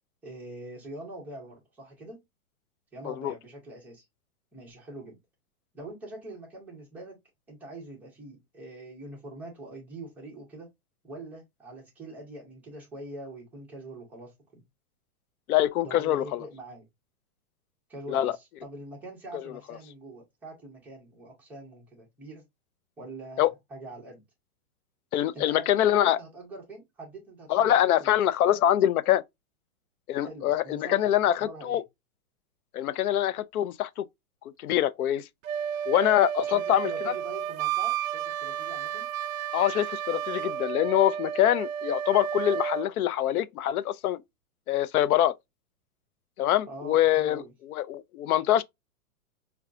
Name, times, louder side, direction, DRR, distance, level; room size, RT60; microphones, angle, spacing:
voice 1, 0.2-2.2 2.9-4.1 4.5-5.2 5.7-7.2 7.5-10.7 11.0-14.6 15.8-16.9 17.9-22.4 23.0-24.2 25.3-28.2 30.2-31.1 31.4-31.8 36.5-39.1 46.7-47.5, right 2 dB, 5° right, 0.4 m, -44 dB
voice 2, 3.0-3.3 15.5-16.4 18.1-18.3 23.4-23.5 25.1-26.2 27.5-29.2 30.1-31.8 32.7-34.0 34.6-35.2 35.9-37.1 39.5-44.2 44.7-45.3 46.4-47.4 47.7-48.6, left 12 dB, 80° left, 0.5 m, -24 dB
Wind instrument woodwind instrument, 35.4-42.9, right 9 dB, 65° right, 0.5 m, -32 dB
4.7 x 2.3 x 2.4 m
hypercardioid pair, 145°, 43 cm